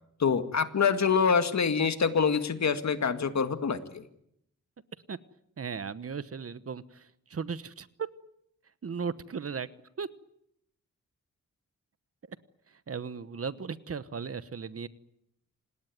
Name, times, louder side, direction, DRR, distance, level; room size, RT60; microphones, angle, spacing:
voice 1, 0.2-4.1, left 6 dB, 60° left, 10 dB, 2.0 m, -26 dB
voice 2, 5.6-8.1 8.8-9.7 10.0-10.1 12.3-12.4 12.7-14.9, right 6 dB, 45° right, 15 dB, 1.1 m, -36 dB
27.5 x 19.0 x 9.4 m, 0.76 s
wide cardioid pair, 115°, 31 cm